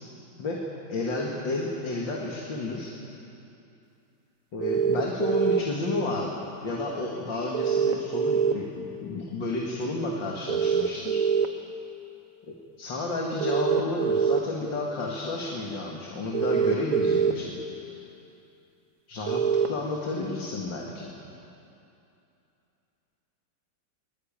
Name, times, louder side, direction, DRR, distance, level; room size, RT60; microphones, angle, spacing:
voice 1, 0.9-2.9 4.5-6.3 6.6-11.2 12.5-17.5 17.8-17.9 19.1-19.4 19.7-21.1, left 2 dB, 70° left, -2 dB, 2.8 m, -31 dB
sound 1, 4.6-5.6 7.5-8.5 10.5-11.5 13.4-14.4 16.3-17.3 19.3-19.7, right 7 dB, 50° right, 1.3 m, -23 dB
23.0 x 20.5 x 8.9 m, 2.8 s
omnidirectional pair, 2.1 m